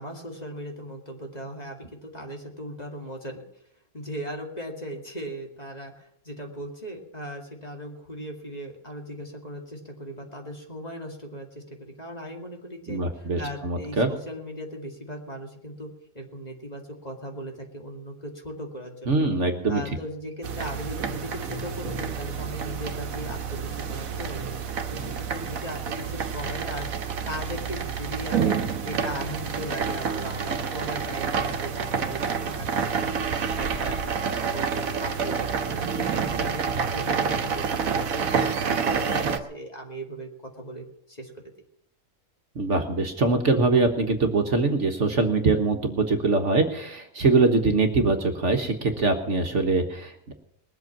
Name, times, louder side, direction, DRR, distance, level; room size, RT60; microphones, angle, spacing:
voice 1, 0.0-3.4 3.9-19.3 19.7-24.6 24.9-33.3 33.6-40.3 40.6-41.4, equal, 25° left, 2 dB, 2.4 m, -38 dB
voice 2, 12.9-14.1 19.1-19.8 42.5-50.3, right 3 dB, 55° right, 5 dB, 1.6 m, -23 dB
sound 1, 20.4-39.4, right 6 dB, 70° right, 1.5 m, -28 dB
20.5 x 8.1 x 7.4 m, 0.73 s
omnidirectional pair, 1.5 m